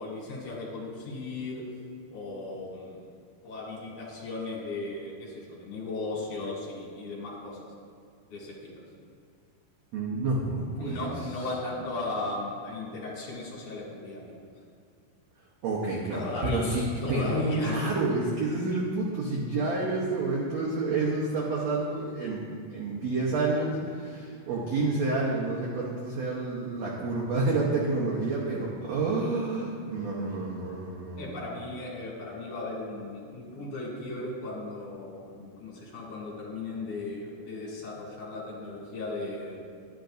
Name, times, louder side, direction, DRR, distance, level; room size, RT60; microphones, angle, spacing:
voice 1, 0.0-1.6 2.1-3.0 3.4-7.6 8.3-8.7 10.8-14.4 16.1-17.9 31.2-39.6, left 2 dB, 50° left, -5 dB, 3.7 m, -35 dB
voice 2, 9.9-11.1 15.6-31.3, right 3 dB, 70° right, -4 dB, 1.6 m, -29 dB
11.5 x 10.5 x 2.6 m, 2.4 s
omnidirectional pair, 4.4 m